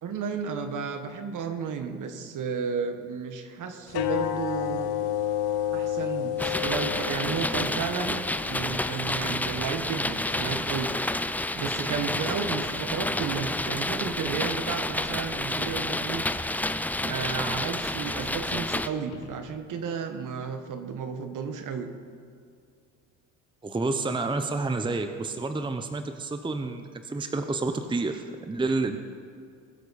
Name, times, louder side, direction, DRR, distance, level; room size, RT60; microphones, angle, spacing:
voice 1, 0.0-5.0 5.7-10.9 11.5-16.2 17.0-21.9, right 6 dB, 50° right, 7 dB, 1.6 m, -33 dB
sound 1, 3.9-10.8, left 11 dB, 70° left, 1.0 m, -32 dB
sound 2, 6.4-18.9, left 1 dB, 5° left, 0.5 m, -30 dB
sound 3, 19.0-20.2 25.1-25.2, left 7 dB, 90° left, 1.2 m, -50 dB
voice 2, 23.6-29.0, right 3 dB, 10° right, 7 dB, 0.8 m, -29 dB
21.5 x 8.1 x 4.2 m, 2.3 s
hypercardioid pair, 75°, 39 cm